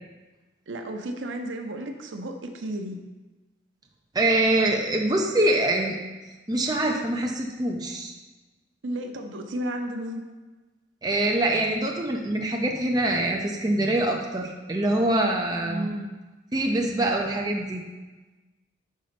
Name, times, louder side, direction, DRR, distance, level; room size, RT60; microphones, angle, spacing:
voice 1, 0.7-3.0 8.8-10.2 15.6-16.1, right 1 dB, 85° right, 4 dB, 0.6 m, -33 dB
voice 2, 4.1-6.0 6.5-8.1 11.0-15.9 16.5-17.8, right 1 dB, 20° right, 0 dB, 0.5 m, -24 dB
5.4 x 3.9 x 5.1 m, 1.2 s
head